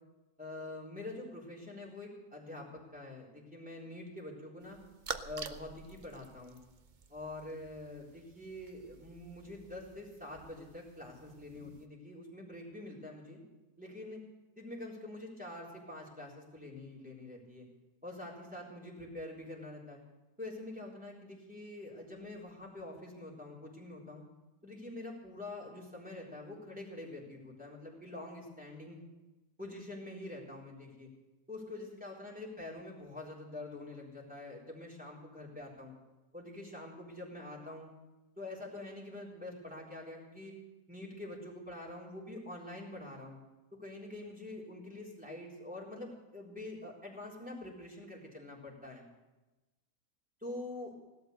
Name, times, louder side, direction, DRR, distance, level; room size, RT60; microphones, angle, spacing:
voice 1, 0.4-4.8 5.2-6.6 7.1-13.4 13.8-14.2 14.6-17.7 18.0-20.0 20.4-24.2 24.6-29.0 29.6-31.1 31.5-35.9 36.3-37.9 38.4-40.6 40.9-43.4 43.7-49.0 50.4-50.9, left 2 dB, 5° right, -4 dB, 3.8 m, -46 dB
sound 1, 4.6-11.9, right 5 dB, 40° right, 0.7 m, -49 dB
16.5 x 12.5 x 6.6 m, 1.1 s
omnidirectional pair, 1.6 m